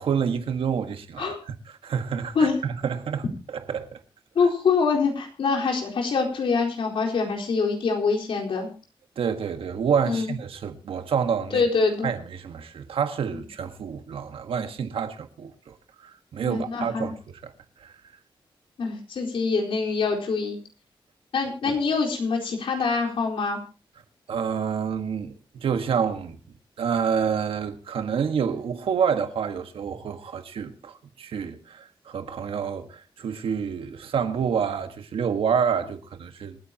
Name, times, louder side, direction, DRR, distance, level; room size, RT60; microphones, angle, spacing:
voice 1, 0.0-4.0 9.1-11.7 12.0-15.8 16.0-17.5 17.8-18.0 21.6-21.8 24.3-26.4 26.8-36.6, right 7 dB, 90° right, 1.6 m, -28 dB
voice 2, 4.3-8.7 10.1-10.3 11.5-12.1 16.4-17.1 18.8-20.6 21.3-23.6, left 4 dB, 80° left, 4.3 m, -24 dB
27.5 x 9.4 x 2.9 m
wide cardioid pair, 135°, 9 cm